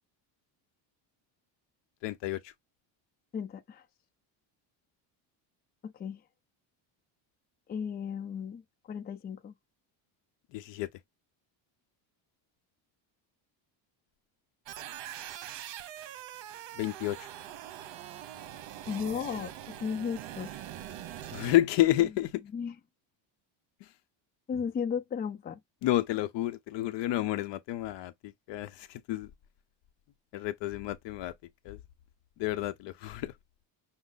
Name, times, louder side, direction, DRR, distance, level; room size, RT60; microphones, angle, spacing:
voice 1, 2.0-2.5 10.5-10.9 16.7-17.3 21.3-22.4 25.8-29.3 30.3-31.3 31.6-31.8 32.4-33.3, left 15 dB, 60° left, 0.7 m, -30 dB
voice 2, 3.3-3.8 5.8-6.2 7.7-9.5 18.9-20.5 22.5-22.7 24.5-25.6, left 7 dB, 20° left, 0.5 m, -35 dB
sound 1, 14.7-21.5, right 11 dB, 65° right, 1.0 m, -43 dB
6.1 x 2.1 x 3.9 m
cardioid pair, 165°, 48 cm